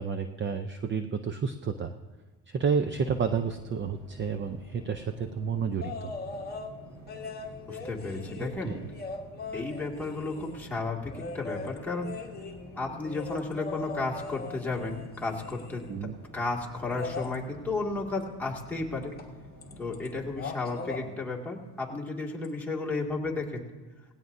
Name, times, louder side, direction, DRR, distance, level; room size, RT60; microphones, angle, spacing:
voice 1, 0.0-1.9 2.5-6.1 8.4-8.9 15.9-16.1, right 6 dB, 30° right, 8 dB, 0.6 m, -31 dB
sound 1, 2.8-20.6, equal, 70° right, 5.3 m, -50 dB
sound 2, 5.8-6.7 7.1-10.6 11.1-16.0 16.8-17.3 19.2-19.3 19.6-20.1 20.3-21.0 22.4-22.5, left 3 dB, 25° left, 1.4 m, -40 dB
voice 2, 7.7-8.8 9.5-12.1 12.8-15.8 16.3-19.1 19.8-23.6, left 3 dB, 5° left, -3 dB, 2.2 m, -33 dB
18.0 x 17.0 x 2.7 m, 1.3 s
cardioid pair, 110°, 40 cm